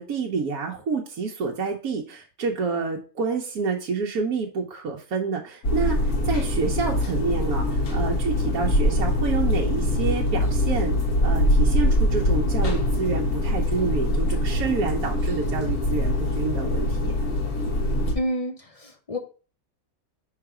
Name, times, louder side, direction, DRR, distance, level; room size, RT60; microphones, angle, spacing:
voice 1, 0.0-10.9 11.2-17.1, right 5 dB, 85° right, -1 dB, 1.4 m, -28 dB
sound 1, 5.6-18.1, left 1 dB, 85° left, 1.8 m, -23 dB
voice 2, 18.1-19.2, equal, 35° left, 5 dB, 0.6 m, -29 dB
5.8 x 3.9 x 4.8 m, 0.37 s
omnidirectional pair, 1.5 m